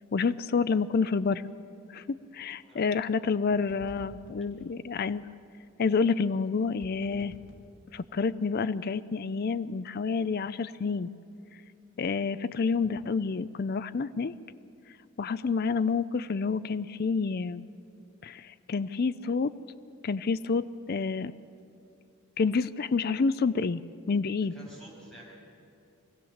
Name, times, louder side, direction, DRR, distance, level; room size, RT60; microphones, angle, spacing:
voice 1, 0.1-1.4 1.9-5.2 5.8-7.3 7.9-11.1 12.0-14.3 15.2-17.6 18.2-19.5 20.0-21.3 22.4-23.8 24.1-24.5, left 5 dB, 45° left, 14 dB, 0.4 m, -28 dB
voice 2, 2.6-3.0 24.5-25.2, right 1 dB, 5° left, -6 dB, 6.8 m, -50 dB
sound 1, 3.5-5.0 6.8-8.3, equal, 60° left, 3.3 m, -52 dB
24.5 x 16.0 x 7.2 m, 2.6 s
head